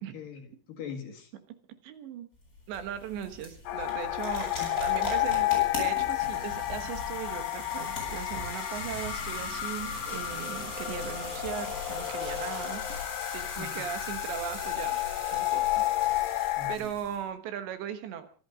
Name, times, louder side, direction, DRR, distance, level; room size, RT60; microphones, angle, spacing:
voice 1, 0.1-1.3 4.4-4.7 13.3-13.9 16.6-16.9, left 7 dB, 55° left, 4 dB, 3.1 m, -42 dB
voice 2, 1.8-2.3 2.7-4.5 4.8-12.8 13.3-15.0 15.3-18.3, right 9 dB, 70° right, 9 dB, 3.4 m, -38 dB
sound 1, 2.3-17.2, left 2 dB, 15° left, 8.1 m, -40 dB
sound 2, 3.7-16.8, left 15 dB, 85° left, 3.7 m, -31 dB
24.5 x 11.5 x 5.1 m, 0.41 s
omnidirectional pair, 5.4 m